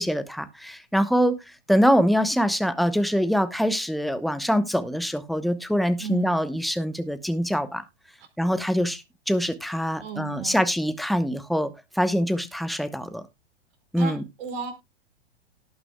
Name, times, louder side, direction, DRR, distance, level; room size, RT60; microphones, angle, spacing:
voice 1, 0.0-1.4 1.7-7.8 8.4-11.7 12.0-13.2 13.9-14.2, equal, ahead, 0.9 m, -24 dB
voice 2, 5.7-6.3 8.2-8.3 10.0-10.7 14.0-14.7, right 5 dB, 55° right, 4.9 m, -35 dB
18.0 x 6.0 x 2.2 m
hypercardioid pair, 110°, 34 cm